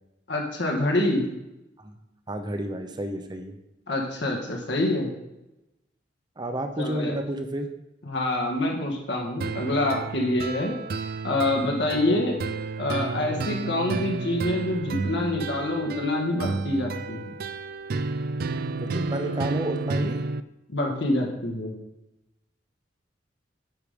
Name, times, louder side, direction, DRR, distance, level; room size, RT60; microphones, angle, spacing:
voice 1, 0.3-1.2 3.9-5.1 6.8-7.1 8.1-10.8 11.2-12.4 12.8-17.3 20.7-21.7, left 1 dB, 70° left, 0 dB, 1.6 m, -26 dB
voice 2, 2.3-3.5 6.4-7.7 11.9-12.2 18.8-20.2, right 1 dB, 25° right, 6 dB, 0.8 m, -31 dB
sound 1, 9.4-20.4, right 3 dB, 55° right, 0.4 m, -31 dB
9.8 x 5.0 x 5.2 m, 0.94 s
head